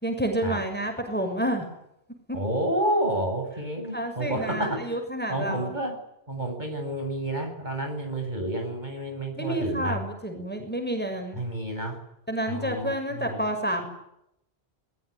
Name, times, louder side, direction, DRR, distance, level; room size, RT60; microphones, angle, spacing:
voice 1, 0.0-1.7 2.3-2.4 3.9-5.7 9.4-11.4 12.3-13.9, right 1 dB, 10° left, 4 dB, 6.5 m, -29 dB
voice 2, 2.3-5.0 5.3-6.0 6.3-10.0 11.4-12.0 12.5-13.4, right 1 dB, 45° right, 3 dB, 8.3 m, -30 dB
28.0 x 21.5 x 9.9 m, 0.80 s
omnidirectional pair, 1.1 m